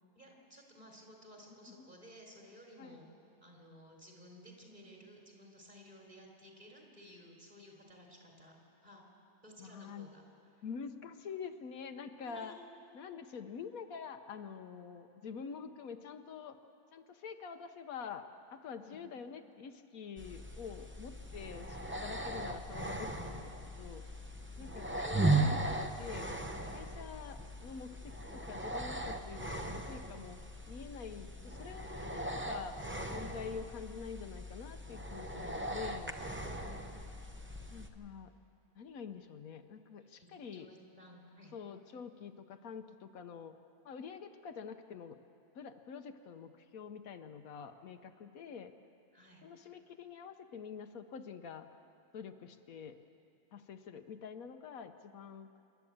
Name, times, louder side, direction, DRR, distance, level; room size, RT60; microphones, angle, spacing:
voice 1, 0.1-3.1 3.4-8.6 8.8-9.0 9.4-10.2 10.6-10.7 12.2-12.7 18.8-19.0 24.5-24.7 36.6-36.9 40.0-41.5 49.1-49.4, equal, 25° right, 0 dB, 3.8 m, -56 dB
voice 2, 9.6-10.1 10.6-12.5 12.9-16.6 16.9-18.3 18.5-24.1 24.6-25.6 26.0-26.3 26.7-30.4 30.7-32.8 33.1-36.1 37.7-38.3 38.8-40.7 41.5-43.6 43.8-45.2 45.5-48.7 49.4-51.7 52.1-53.0 53.5-55.5, left 6 dB, 75° left, 8 dB, 1.2 m, -46 dB
sound 1, 20.2-37.9, right 2 dB, 10° right, 0.7 m, -38 dB
27.5 x 11.5 x 8.7 m, 2.7 s
omnidirectional pair, 1.5 m